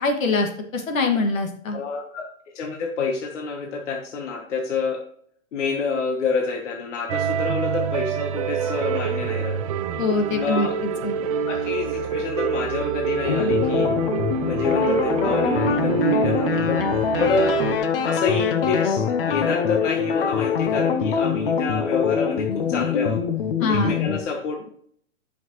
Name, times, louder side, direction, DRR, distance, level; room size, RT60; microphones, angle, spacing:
voice 1, 0.0-1.8 10.0-10.7 11.0-11.1 23.6-23.9, left 3 dB, 85° left, 4 dB, 2.2 m, -23 dB
voice 2, 1.7-2.3 2.5-5.0 5.5-9.6 10.3-11.2 11.4-13.9 14.4-16.8 17.2-17.6 18.0-23.2 23.7-24.7, left 4 dB, 65° left, 2 dB, 1.4 m, -28 dB
sound 1, 7.1-17.8, right 7 dB, 30° right, 0.6 m, -26 dB
sound 2, 13.2-24.2, left 7 dB, 45° left, 1.0 m, -23 dB
10.0 x 5.9 x 3.1 m, 0.62 s
hypercardioid pair, 160°, 39 cm